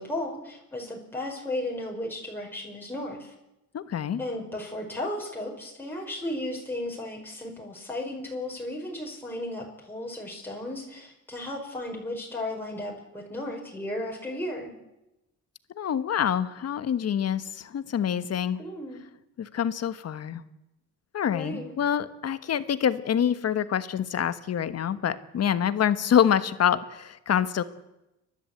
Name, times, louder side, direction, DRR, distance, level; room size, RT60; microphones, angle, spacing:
voice 1, 0.0-3.3 4.2-14.8 18.6-19.0 21.3-21.7, left 1 dB, 5° left, -2 dB, 5.3 m, -35 dB
voice 2, 3.7-4.2 15.8-18.6 19.4-20.4 21.1-27.6, left 9 dB, 55° left, 13 dB, 1.4 m, -26 dB
30.0 x 12.0 x 8.1 m, 0.95 s
cardioid pair, 90°, 30 cm